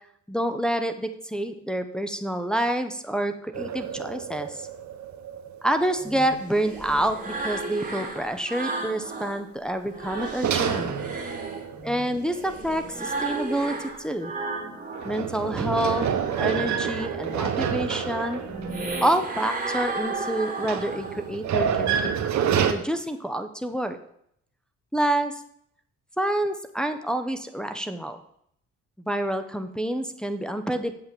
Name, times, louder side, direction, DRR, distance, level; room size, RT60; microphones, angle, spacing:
voice 1, 0.3-4.7 5.6-10.9 11.8-14.3 15.0-16.1 16.4-18.4 19.0-22.1 22.7-24.0 24.9-25.4 26.2-28.2 29.1-31.0, right 1 dB, 5° left, 6 dB, 0.8 m, -28 dB
sound 1, 3.5-7.0 7.6-7.7 10.4-12.7 14.9-19.8 20.6-22.7, right 8 dB, 65° right, 1.1 m, -28 dB
sound 2, 6.0-9.4 9.8-15.2 15.5-21.4, right 3 dB, 25° right, 2.5 m, -34 dB
7.6 x 5.8 x 6.8 m, 0.70 s
cardioid pair, 90°, 30 cm